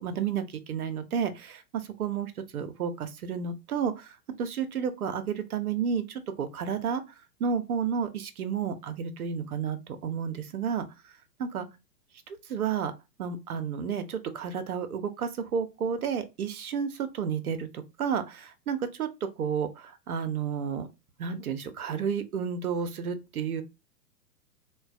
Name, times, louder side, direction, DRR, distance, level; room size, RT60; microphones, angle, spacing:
voice 1, 0.0-7.0 7.4-10.8 11.5-11.6 12.3-12.9 13.2-20.9 21.2-23.6, right 7 dB, 60° right, 0.7 m, -31 dB
3.8 x 2.2 x 2.5 m
figure-of-eight pair, 110°, 49 cm